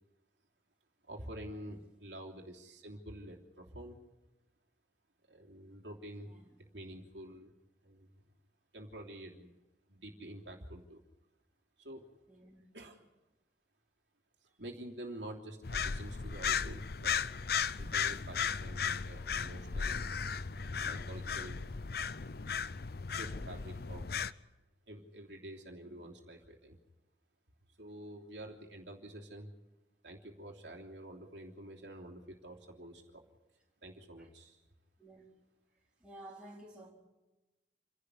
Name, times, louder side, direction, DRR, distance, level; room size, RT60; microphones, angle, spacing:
voice 1, 1.1-4.0 5.3-6.3 6.7-7.5 7.8-8.1 8.7-9.6 9.9-11.0 11.8-12.1 12.7-13.0 14.6-17.2 17.8-20.1 20.8-21.6 21.9-22.1 23.1-24.1 24.9-26.8 27.8-29.5 30.0-33.2 33.8-34.6, right 1 dB, 75° right, 0 dB, 3.1 m, -48 dB
voice 2, 6.2-6.6 12.3-12.8 25.8-26.0 34.2-34.3 35.0-35.3 36.0-36.9, right 1 dB, 5° right, -6 dB, 4.1 m, -53 dB
sound 1, 15.6-24.3, left 6 dB, 55° left, 0.7 m, -36 dB
28.0 x 11.5 x 9.8 m, 1.1 s
head